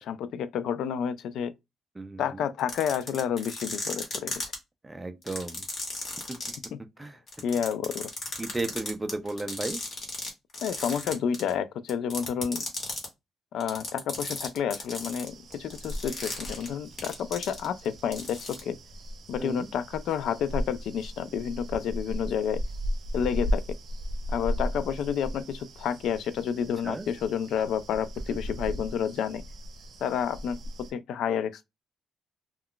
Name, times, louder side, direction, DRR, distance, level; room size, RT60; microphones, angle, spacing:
voice 1, 0.0-1.5 2.2-4.3 6.7-6.8 7.4-8.1 10.6-12.6 13.5-18.8 19.3-22.6 23.1-23.6 24.3-29.4 30.0-31.7, left 8 dB, 75° left, 0.3 m, -30 dB
voice 2, 2.0-2.4 4.8-5.7 7.0-7.2 8.4-9.8 19.4-19.7 26.8-27.1 28.3-28.4 28.7-28.8, right 2 dB, 15° right, 0.4 m, -34 dB
sound 1, 2.6-4.5 5.2-6.6 7.3-10.3 10.5-11.5 11.9-13.0 13.6-17.9 18.1-18.6, left 3 dB, 40° left, 1.1 m, -35 dB
sound 2, 15.2-30.9, equal, 55° right, 0.7 m, -36 dB
2.3 x 2.2 x 3.6 m
cardioid pair, 135°, 0 cm